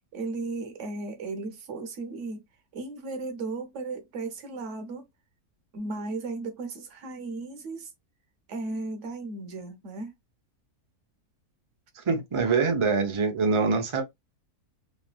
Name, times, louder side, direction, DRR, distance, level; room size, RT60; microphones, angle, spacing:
voice 1, 0.1-2.4 2.7-5.1 5.7-7.9 8.5-10.1, right 3 dB, 60° right, 1.0 m, -35 dB
voice 2, 11.9-14.0, right 4 dB, 35° right, 0.5 m, -24 dB
3.2 x 2.5 x 2.2 m
omnidirectional pair, 1.6 m